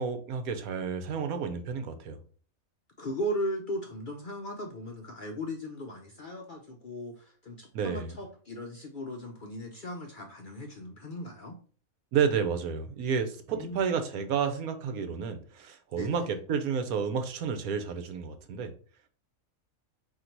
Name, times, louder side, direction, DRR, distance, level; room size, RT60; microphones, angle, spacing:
voice 1, 0.0-2.2 7.7-8.2 12.1-18.7, right 6 dB, 90° right, 6 dB, 1.2 m, -31 dB
voice 2, 3.0-11.6 13.5-13.8 15.9-16.4, equal, 55° left, 2 dB, 0.5 m, -37 dB
3.9 x 2.8 x 4.4 m, 0.43 s
omnidirectional pair, 1.5 m